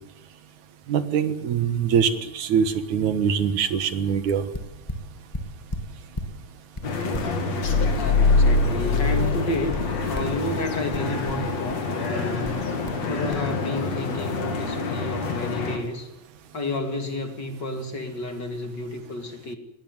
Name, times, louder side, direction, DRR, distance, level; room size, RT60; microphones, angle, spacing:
voice 1, 0.9-2.1 2.3-4.4, right 7 dB, 80° right, 11 dB, 2.9 m, -23 dB
sound 1, 4.5-6.4 6.7-9.0 9.3-10.4 10.9-11.9 12.4-13.0 13.3-13.5, left 1 dB, 10° left, 1.7 m, -35 dB
sound 2, 6.8-15.8, left 3 dB, 65° left, 4.1 m, -28 dB
sound 3, 7.6-10.2 10.5-10.7, left 3 dB, 80° left, 3.4 m, -22 dB
voice 2, 8.2-9.8 10.0-12.6 13.1-16.1 16.5-19.6, left 1 dB, 35° left, 6 dB, 2.9 m, -31 dB
20.0 x 18.0 x 9.6 m, 0.83 s
omnidirectional pair, 3.3 m